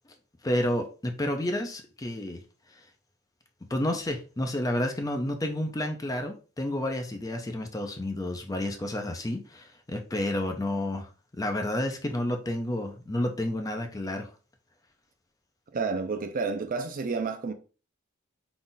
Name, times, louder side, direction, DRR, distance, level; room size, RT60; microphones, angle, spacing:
voice 1, 0.4-2.4 3.7-11.1 11.4-14.3, left 1 dB, 20° left, 0.5 m, -30 dB
voice 2, 15.7-17.5, right 4 dB, 45° right, 0.4 m, -30 dB
3.9 x 2.4 x 3.8 m
head